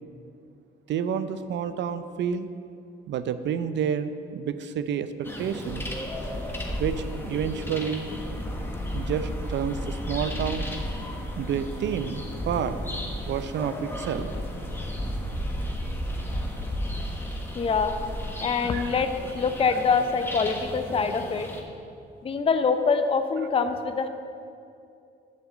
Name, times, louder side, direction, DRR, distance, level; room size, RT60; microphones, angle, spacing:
voice 1, 0.9-2.5 3.1-5.1 5.4-5.8 6.8-8.1 8.9-10.7 11.4-12.8 13.3-14.3 18.6-19.0, right 7 dB, 65° right, 12 dB, 0.5 m, -29 dB
sound 1, 5.2-21.6, equal, 10° left, 1.3 m, -33 dB
voice 2, 17.5-18.0 18.4-21.5 22.2-24.1, left 5 dB, 30° left, 8 dB, 0.5 m, -25 dB
7.6 x 5.9 x 7.6 m, 2.6 s
cardioid pair, 90°, 20 cm